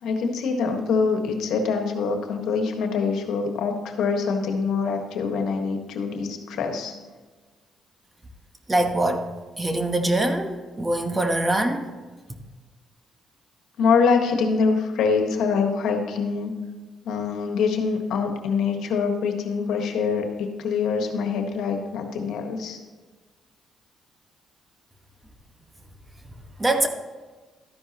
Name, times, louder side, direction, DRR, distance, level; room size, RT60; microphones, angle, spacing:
voice 1, 0.0-6.9 13.8-16.5 17.0-22.8, left 5 dB, 80° left, 4 dB, 1.5 m, -24 dB
voice 2, 8.7-9.2 9.6-11.9 26.6-26.9, right 1 dB, 20° right, 6 dB, 1.2 m, -23 dB
13.0 x 10.0 x 3.0 m, 1.3 s
cardioid pair, 90°, 0 cm